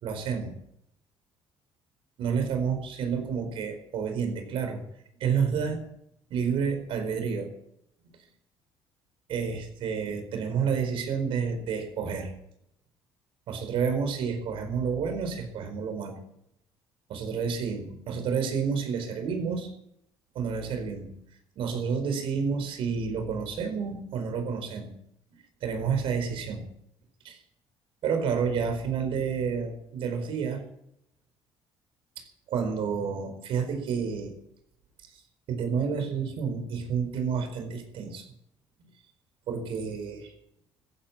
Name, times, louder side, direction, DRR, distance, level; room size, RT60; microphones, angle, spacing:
voice 1, 0.0-0.5 2.2-4.8 5.2-5.8 6.3-7.5 9.3-12.3 13.5-16.2 17.1-19.7 20.3-21.1 21.6-24.9 25.6-26.6 27.2-27.4 28.0-30.6 32.2-34.3 35.1-35.2 35.5-38.3 39.5-40.3, right 6 dB, 70° right, 6 dB, 4.6 m, -30 dB
15.0 x 10.5 x 8.8 m, 0.76 s
cardioid pair, 100°, 10 cm